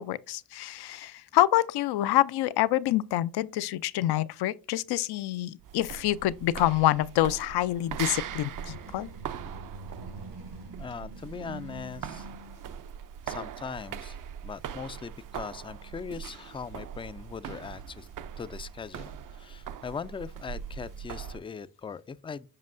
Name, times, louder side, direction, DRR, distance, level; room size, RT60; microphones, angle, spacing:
voice 1, 0.0-9.1, left 14 dB, 75° left, 0.5 m, -27 dB
sound 1, 5.6-21.4, right 9 dB, 55° right, 0.6 m, -41 dB
sound 2, 7.8-13.0, right 2 dB, 90° right, 3.7 m, -46 dB
voice 2, 10.8-12.3 13.3-14.2 14.4-18.1 18.4-19.1 19.4-22.5, left 6 dB, 15° left, 0.3 m, -40 dB
7.5 x 5.3 x 2.5 m
supercardioid pair, 65°, 39 cm